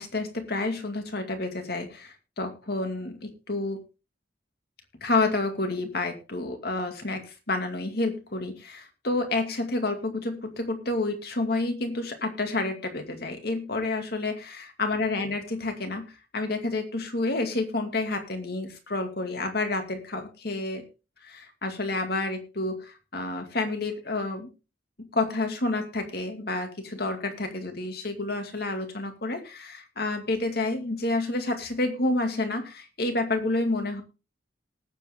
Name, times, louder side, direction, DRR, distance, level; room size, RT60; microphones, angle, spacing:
voice 1, 0.0-3.8 5.0-20.8 21.2-24.5 25.0-34.0, left 2 dB, 55° left, 6 dB, 2.4 m, -29 dB
19.5 x 7.8 x 3.7 m, 0.32 s
head